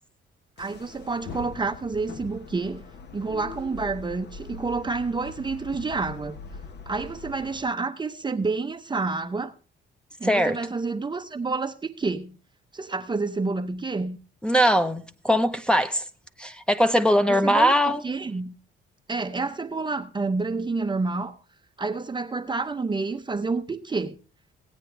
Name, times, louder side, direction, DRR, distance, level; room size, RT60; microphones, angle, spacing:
sound 1, 0.6-7.6, left 5 dB, 60° left, 1.2 m, -42 dB
voice 1, 0.6-2.8 3.1-6.4 6.9-9.5 10.2-12.4 12.7-14.2 17.3-17.8 18.0-18.6 19.1-21.4 21.8-24.2, right 3 dB, 25° right, 0.7 m, -29 dB
voice 2, 10.2-10.6 14.4-16.0 16.4-18.0, equal, 5° left, 0.8 m, -21 dB
17.0 x 8.9 x 3.3 m
cardioid pair, 90°, 20 cm